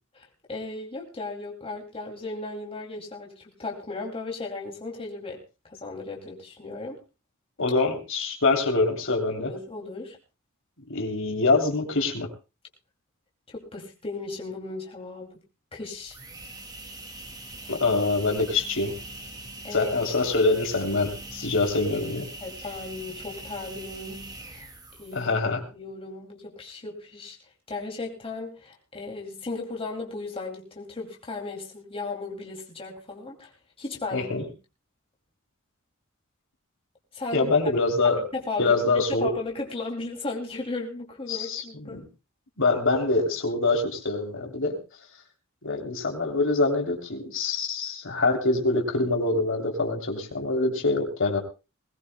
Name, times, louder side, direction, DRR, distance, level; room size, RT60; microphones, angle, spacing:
voice 1, 0.1-5.4 5.6-7.0 9.3-10.2 13.5-15.4 15.7-16.2 19.6-19.9 22.4-24.2 24.5-24.7 25.0-25.3 25.7-27.4 27.7-33.5 33.8-34.5 37.1-37.5 38.0-42.0, left 3 dB, 25° left, 0 dB, 2.7 m, -36 dB
voice 2, 7.6-9.5 10.9-12.3 17.7-18.9 19.7-22.3 25.1-25.6 34.1-34.4 37.3-38.2 38.6-39.3 41.3-41.6 41.9-42.0 42.6-44.8 45.6-51.4, left 3 dB, 65° left, 2 dB, 3.1 m, -24 dB
sound 1, 15.9-25.4, right 2 dB, 20° right, 2.2 m, -42 dB
21.0 x 19.0 x 2.2 m, 0.30 s
head